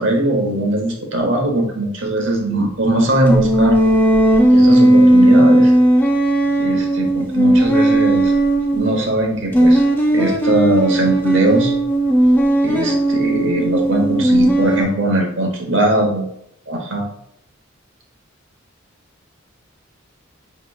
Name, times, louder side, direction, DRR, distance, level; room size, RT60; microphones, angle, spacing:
voice 1, 0.0-3.8 4.5-5.7 6.6-8.3 8.7-9.8 10.1-11.7 12.6-16.3 16.7-17.1, right 1 dB, 65° right, 1 dB, 0.9 m, -19 dB
sound 1, 3.3-9.0 9.5-14.8, right 1 dB, 10° left, 0.4 m, -15 dB
5.6 x 2.9 x 2.3 m, 0.75 s
head